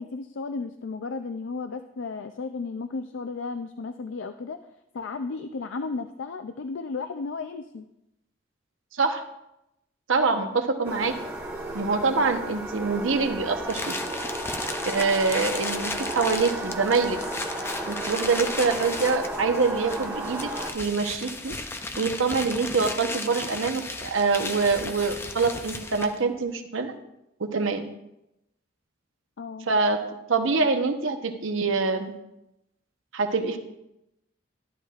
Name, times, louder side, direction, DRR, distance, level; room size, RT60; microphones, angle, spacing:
voice 1, 0.0-4.6 4.9-7.9 29.4-29.7, left 4 dB, 75° left, 8 dB, 0.4 m, -34 dB
voice 2, 10.1-11.1 11.7-13.9 14.8-17.2 17.9-21.5 22.0-26.9 27.4-27.9 29.7-32.1 33.1-33.6, right 4 dB, 85° right, 5 dB, 1.0 m, -25 dB
sound 1, 10.8-20.7, right 1 dB, 10° right, 1.2 m, -33 dB
sound 2, 13.7-26.3, left 2 dB, 10° left, 0.4 m, -35 dB
12.0 x 11.5 x 2.4 m, 0.86 s
head